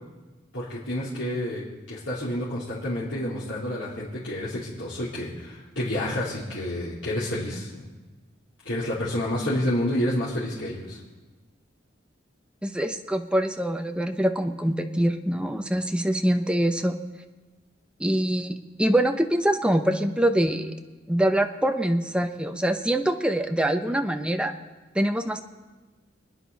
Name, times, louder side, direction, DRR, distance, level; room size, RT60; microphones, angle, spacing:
voice 1, 0.5-7.8 8.6-11.0, left 1 dB, 85° left, -10 dB, 3.4 m, -29 dB
voice 2, 12.6-16.9 18.0-20.7 21.1-24.5 24.9-25.4, right 1 dB, 5° right, 6 dB, 0.8 m, -24 dB
26.5 x 9.8 x 4.1 m, 1.2 s
head